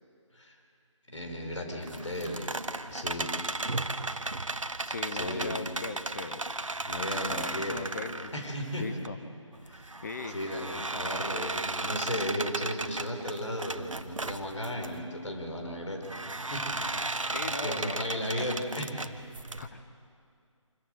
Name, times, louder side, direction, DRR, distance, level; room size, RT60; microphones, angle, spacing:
voice 1, 1.1-3.3 5.1-5.6 6.8-7.8 8.3-8.9 9.7-16.0 16.3-17.1 17.6-19.0, equal, 65° left, 2 dB, 4.9 m, -35 dB
sound 1, 1.8-9.1 9.5-14.9 16.0-19.7, right 2 dB, 80° right, 1.1 m, -35 dB
voice 2, 4.8-6.4 7.3-8.3 8.8-9.2 10.0-10.4 10.8-11.0 17.3-18.5 19.6-19.8, left 4 dB, 35° left, 7 dB, 0.9 m, -39 dB
26.0 x 15.0 x 7.9 m, 2.4 s
figure-of-eight pair, 155°, 17 cm